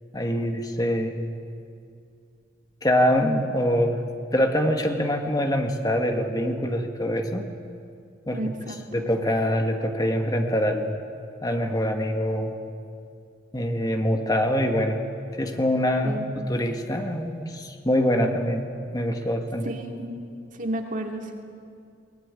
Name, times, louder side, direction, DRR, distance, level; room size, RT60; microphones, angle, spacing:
voice 1, 0.1-1.2 2.8-4.0 4.3-7.4 8.3-8.4 8.9-11.0 11.4-12.5 13.5-15.0 15.4-18.7 18.9-19.7, equal, 20° left, 4 dB, 1.7 m, -24 dB
voice 2, 8.3-9.1 16.0-16.3 19.6-20.1 20.6-21.3, right 1 dB, 45° right, 3 dB, 2.5 m, -32 dB
23.0 x 20.0 x 9.8 m, 2.4 s
head